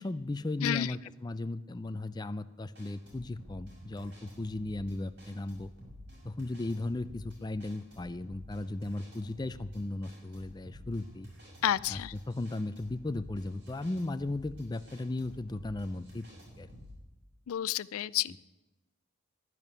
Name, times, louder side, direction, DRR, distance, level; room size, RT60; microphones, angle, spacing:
voice 1, 0.0-5.7 6.2-11.3 11.9-12.0 12.3-16.2 16.6-16.7 18.3-18.4, left 2 dB, 20° left, 12 dB, 0.4 m, -36 dB
voice 2, 0.6-0.9 11.6-12.1 17.5-18.4, left 11 dB, 85° left, 18 dB, 0.4 m, -30 dB
sound 1, 2.8-17.0, equal, 55° right, 6.6 m, -51 dB
11.0 x 11.0 x 9.8 m, 1.1 s
head